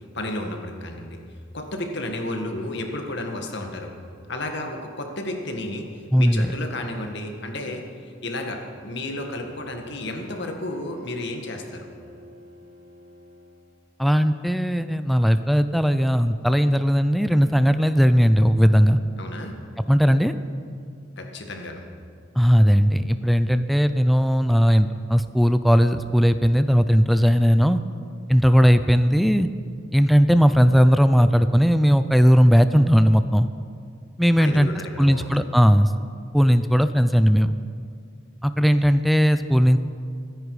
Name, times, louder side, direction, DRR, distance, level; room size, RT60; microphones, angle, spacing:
voice 1, 0.1-1.2 1.5-3.9 4.3-11.9 19.2-19.5 21.2-21.8 34.4-35.4, left 1 dB, 60° left, 3 dB, 1.8 m, -32 dB
voice 2, 6.1-6.5 14.0-19.0 19.9-20.3 22.4-27.8 28.3-29.5 29.9-33.5 34.2-34.7 35.0-35.9 36.3-37.5 38.4-39.8, equal, ahead, 10 dB, 0.4 m, -18 dB
Bowed string instrument, 9.2-14.0, equal, 60° right, 3.0 m, -50 dB
24.5 x 10.0 x 4.9 m, 2.3 s
head